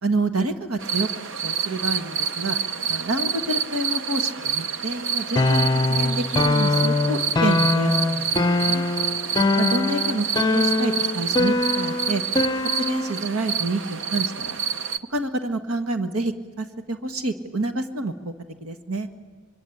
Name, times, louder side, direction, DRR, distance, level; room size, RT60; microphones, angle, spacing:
voice 1, 0.0-1.1 1.4-2.6 2.9-8.8 9.6-10.3 10.5-12.2 12.8-14.6 15.1-18.3 18.6-19.1, right 2 dB, 85° right, 8 dB, 1.6 m, -28 dB
sound 1, 0.8-15.0, right 6 dB, 60° right, 0.9 m, -28 dB
sound 2, 5.3-13.2, left 2 dB, 20° left, 0.7 m, -23 dB
26.0 x 22.5 x 9.9 m, 1.5 s
head